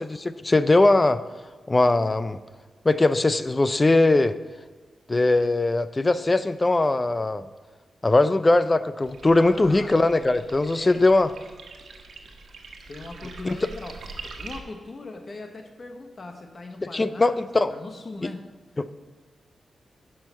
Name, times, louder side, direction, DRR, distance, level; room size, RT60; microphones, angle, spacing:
voice 1, 0.0-1.2 1.7-2.4 2.8-4.3 5.1-7.4 8.0-11.3 13.5-13.6 16.9-17.7 18.2-18.3 18.8-18.9, left 2 dB, 25° left, 14 dB, 0.4 m, -20 dB
sound 1, 9.0-14.6, right 4 dB, 75° right, 1.3 m, -43 dB
voice 2, 9.4-9.9 10.7-11.1 12.9-17.3 17.7-18.4, left 2 dB, 40° left, 5 dB, 0.9 m, -39 dB
10.5 x 6.4 x 5.4 m, 1.4 s
wide cardioid pair, 110°, 0 cm